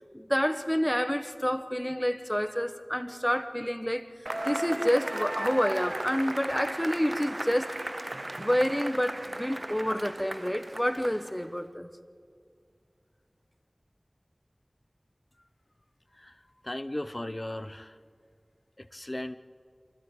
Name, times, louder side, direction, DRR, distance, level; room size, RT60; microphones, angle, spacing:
voice 1, 0.1-4.1 4.4-7.7 8.4-11.9, equal, 10° left, 1.2 m, -28 dB
Cheering / Applause / Crowd, 4.3-11.5, right 1 dB, 45° right, 0.5 m, -36 dB
voice 2, 16.1-18.0 18.8-19.4, left 1 dB, 40° left, 0.8 m, -37 dB
29.5 x 26.0 x 3.8 m
wide cardioid pair, 45°, 0 cm